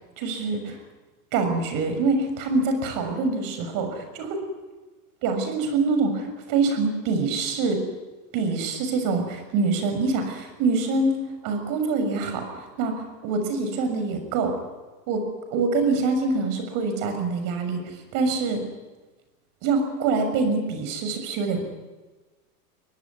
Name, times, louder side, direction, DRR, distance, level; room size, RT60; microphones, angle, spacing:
voice 1, 0.2-0.8 1.3-4.4 5.2-7.8 8.3-14.5 15.1-15.2 15.5-18.6 19.6-21.6, right 3 dB, 45° right, 7 dB, 6.7 m, -25 dB
24.0 x 18.5 x 9.7 m, 1.2 s
supercardioid pair, 135°, 46 cm